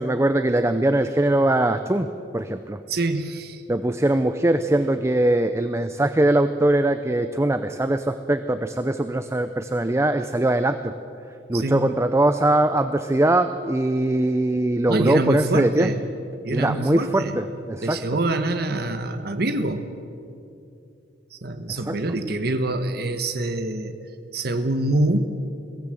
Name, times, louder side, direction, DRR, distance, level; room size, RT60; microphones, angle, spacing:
voice 1, 0.0-2.1 2.3-2.8 3.7-10.9 11.5-15.9 16.5-18.0 21.7-21.9, right 1 dB, 15° right, 9 dB, 0.6 m, -21 dB
voice 2, 2.9-3.6 11.5-11.9 14.9-16.1 16.4-17.4 17.8-19.9 21.3-24.0 24.3-25.2, right 2 dB, 60° right, 8 dB, 1.2 m, -25 dB
22.5 x 17.0 x 7.7 m, 2.6 s
head